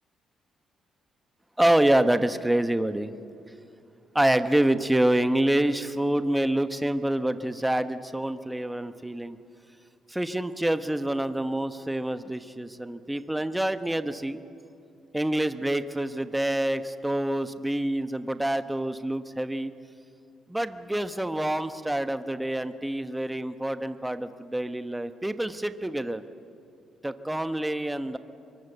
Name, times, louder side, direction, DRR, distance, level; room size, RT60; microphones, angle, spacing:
voice 1, 1.6-3.1 4.1-9.4 10.1-14.4 15.1-19.7 20.5-26.2 27.0-28.2, right 1 dB, 10° right, 10 dB, 1.1 m, -26 dB
24.0 x 23.0 x 8.0 m, 2.5 s
cardioid pair, 90°, 0 cm